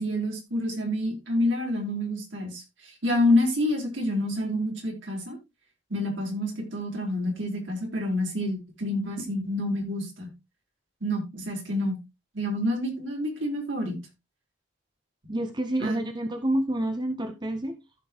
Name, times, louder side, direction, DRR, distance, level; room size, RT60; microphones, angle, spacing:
voice 1, 0.0-5.4 5.9-10.3 11.0-12.0 12.3-14.0 15.8-16.0, left 1 dB, 70° right, 4.1 m, -28 dB
voice 2, 15.3-17.8, right 1 dB, 25° right, 0.8 m, -28 dB
15.0 x 6.0 x 3.0 m
head